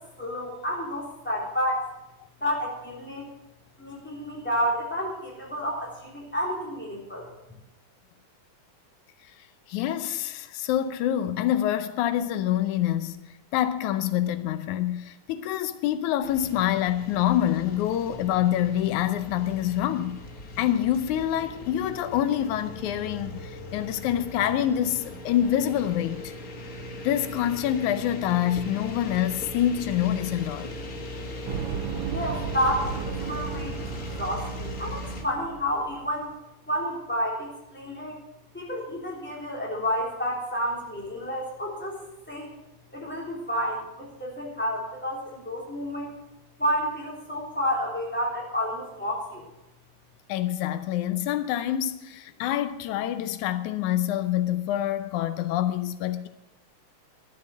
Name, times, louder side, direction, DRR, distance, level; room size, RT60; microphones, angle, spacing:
voice 1, 0.2-1.9 2.4-3.3 3.8-7.3 32.1-33.9 34.2-36.3 36.7-38.2 38.5-42.0 42.3-42.5 42.9-46.1 46.6-49.5, equal, 5° left, 3.3 m, -30 dB
voice 2, 9.7-20.2 20.6-26.3 27.0-30.7 50.3-56.3, left 11 dB, 90° left, 2.1 m, -26 dB
sound 1, 16.2-35.2, left 1 dB, 45° left, 1.2 m, -39 dB
sound 2, 31.5-36.2, right 9 dB, 85° right, 2.1 m, -35 dB
12.5 x 7.3 x 7.6 m
omnidirectional pair, 3.3 m